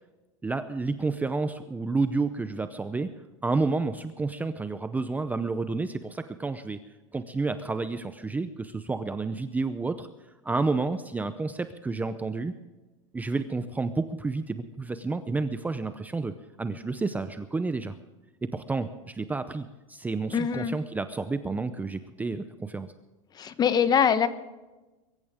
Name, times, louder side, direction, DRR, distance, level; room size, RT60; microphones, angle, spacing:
voice 1, 0.4-3.1 3.4-6.8 7.1-10.1 10.4-12.5 13.1-16.3 16.6-17.9 18.4-22.9, right 3 dB, 10° right, 10 dB, 0.6 m, -30 dB
voice 2, 20.3-20.8 23.3-24.3, left 8 dB, 25° left, 12 dB, 1.1 m, -23 dB
23.0 x 14.0 x 3.6 m, 1.1 s
supercardioid pair, 135°, 17 cm